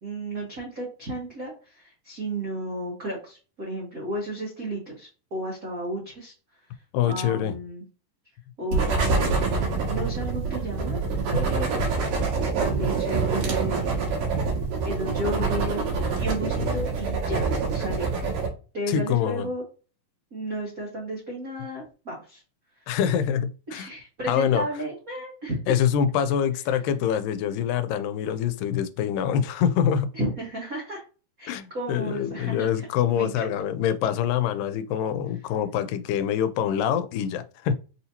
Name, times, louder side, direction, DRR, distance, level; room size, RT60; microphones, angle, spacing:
voice 1, 0.0-6.3 7.0-7.8 8.6-11.0 11.3-11.9 12.6-14.1 14.8-15.9 16.2-18.1 18.7-19.6 20.3-22.4 23.7-25.7 30.1-31.0 31.4-32.9 33.1-33.5, right 1 dB, 70° right, 0.8 m, -33 dB
voice 2, 6.9-7.6 18.9-19.5 22.9-23.9 24.3-24.7 25.7-30.1 31.5-37.7, left 9 dB, 85° left, 2.2 m, -25 dB
sound 1, 8.7-18.5, right 4 dB, 85° right, 3.1 m, -26 dB
6.1 x 2.8 x 2.8 m
omnidirectional pair, 3.8 m